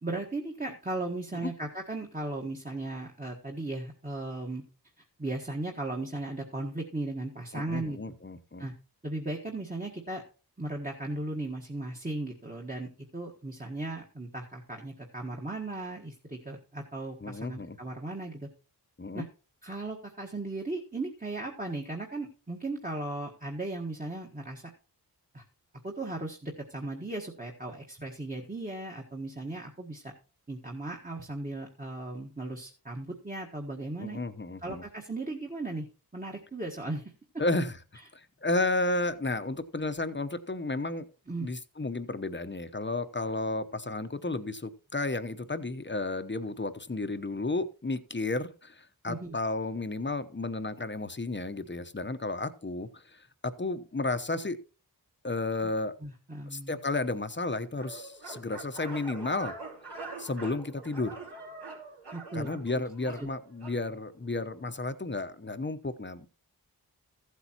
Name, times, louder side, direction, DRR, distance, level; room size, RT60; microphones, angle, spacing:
voice 1, 0.0-4.6 5.2-8.1 8.6-8.7 9.0-10.2 10.6-18.5 19.1-19.3 19.6-24.6 25.3-25.4 25.8-30.1 30.5-34.2 34.6-35.9 36.1-37.1 41.3-41.5 49.1-49.4 55.6-55.7 56.0-56.8 62.1-62.5 63.2-63.3, right 2 dB, 20° right, 0 dB, 1.5 m, -36 dB
voice 2, 7.5-8.7 17.2-17.8 19.0-19.3 34.0-34.8 37.4-37.8 38.1-41.0 41.4-54.6 55.2-55.9 56.5-59.5 60.2-61.1 62.3-66.3, left 2 dB, 30° left, 11 dB, 0.9 m, -32 dB
sound 1, 57.7-63.8, right 3 dB, 85° right, 3.7 m, -44 dB
14.5 x 8.2 x 2.9 m, 0.35 s
cardioid pair, 40°, 40 cm